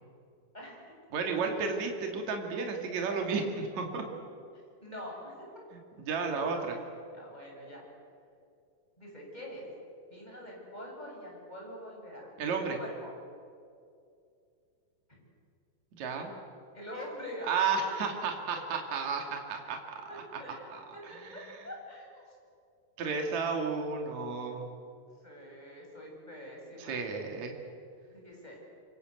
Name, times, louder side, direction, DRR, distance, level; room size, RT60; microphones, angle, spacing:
voice 1, 1.1-4.0 6.1-6.8 12.4-12.8 16.0-16.3 17.5-21.5 23.0-24.7 26.8-27.6, right 5 dB, 55° right, 3 dB, 3.7 m, -33 dB
voice 2, 4.5-5.3 6.7-6.8 7.1-7.8 9.0-9.6 10.1-12.3 12.6-13.1 15.1-15.2 16.1-16.3 16.7-17.9 20.1-22.2 25.2-27.0 28.1-28.6, equal, 10° left, -2 dB, 7.5 m, -44 dB
28.5 x 24.0 x 8.1 m, 2.4 s
omnidirectional pair, 4.1 m